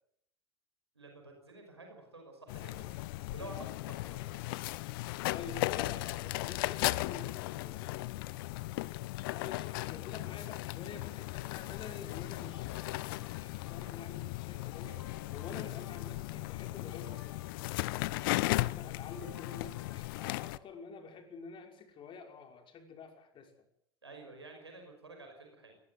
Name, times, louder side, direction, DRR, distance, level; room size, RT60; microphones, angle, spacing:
voice 1, 0.9-2.9 3.3-4.6 17.7-18.1 24.0-25.8, right 2 dB, 85° right, 3 dB, 5.8 m, -51 dB
sound 1, 2.5-20.6, left 20 dB, 60° left, 0.8 m, -37 dB
voice 2, 5.3-8.3 9.2-15.0 15.3-17.5 17.8-23.5, left 5 dB, 40° left, 5 dB, 5.9 m, -48 dB
sound 2, 12.5-14.2 14.7-16.4 16.9-18.5 19.1-20.8, left 4 dB, 85° left, 2.7 m, -58 dB
21.5 x 20.0 x 8.0 m, 0.72 s
figure-of-eight pair, 70°, 14 cm